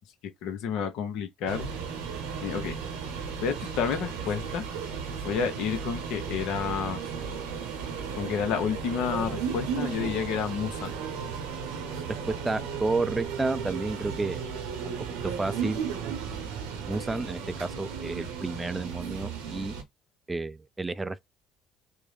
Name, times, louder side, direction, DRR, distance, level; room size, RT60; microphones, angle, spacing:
voice 1, 0.4-1.7 2.4-2.8 3.4-4.6 5.2-7.0 8.1-10.9, left 7 dB, 65° left, 0.8 m, -30 dB
Parisian Metro, 1.5-19.8, right 6 dB, 75° right, 0.9 m, -35 dB
voice 2, 12.3-14.4 14.8-14.9 15.2-15.8 16.9-19.7 20.3-21.3, right 3 dB, 20° right, 0.3 m, -31 dB
3.6 x 2.1 x 3.2 m
hypercardioid pair, 55°, 0 cm